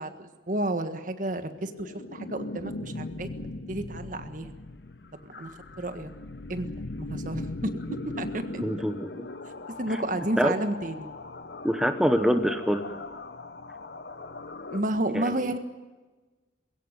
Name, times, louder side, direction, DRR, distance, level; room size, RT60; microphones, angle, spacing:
voice 1, 0.0-3.3 3.7-4.5 5.2-5.5 5.8-6.1 6.5-6.7 7.0-7.7 8.2-8.6 9.8-11.1 14.7-15.6, right 1 dB, 45° right, 9 dB, 1.6 m, -31 dB
sound 1, 1.4-14.8, left 2 dB, 60° left, 1.1 m, -39 dB
voice 2, 8.6-9.3 10.4-10.5 11.6-12.8 15.1-15.3, equal, 5° right, 7 dB, 1.0 m, -25 dB
21.5 x 16.5 x 9.6 m, 1.3 s
head